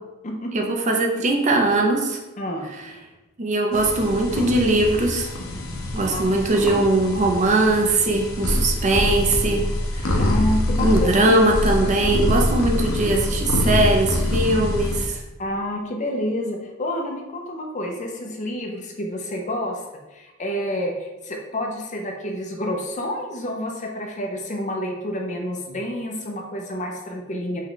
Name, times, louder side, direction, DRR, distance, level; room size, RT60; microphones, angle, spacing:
voice 1, 0.5-2.2 3.4-5.3 5.9-9.7 10.0-10.2 10.8-15.2, right 2 dB, 35° right, 1 dB, 0.5 m, -20 dB
sound 1, 3.7-15.1, left 1 dB, 70° left, 0.7 m, -25 dB
voice 2, 6.1-6.4 10.2-11.4 15.4-19.8 20.1-27.6, left 1 dB, 35° left, 1 dB, 0.6 m, -29 dB
5.4 x 2.3 x 3.8 m, 1.1 s
head